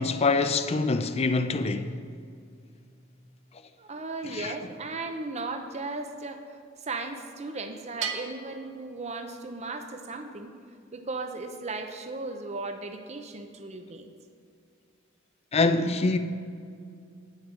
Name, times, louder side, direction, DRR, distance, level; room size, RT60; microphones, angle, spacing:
voice 1, 0.0-1.9 4.3-4.5 15.5-16.2, left 3 dB, 30° left, 0.4 m, -25 dB
voice 2, 3.8-6.4 6.9-10.5 10.9-14.1, right 3 dB, 35° right, 0.7 m, -36 dB
Bell, 8.0-9.7, right 6 dB, 65° right, 0.8 m, -38 dB
9.8 x 6.6 x 6.1 m
head